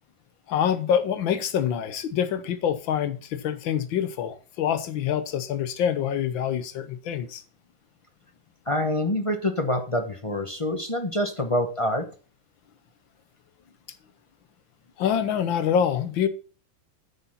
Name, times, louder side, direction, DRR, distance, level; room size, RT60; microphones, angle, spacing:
voice 1, 0.5-7.4 15.0-16.3, left 8 dB, 80° left, 1.7 m, -26 dB
voice 2, 8.7-12.1, left 1 dB, 30° left, 0.6 m, -26 dB
9.6 x 5.6 x 5.7 m
omnidirectional pair, 2.1 m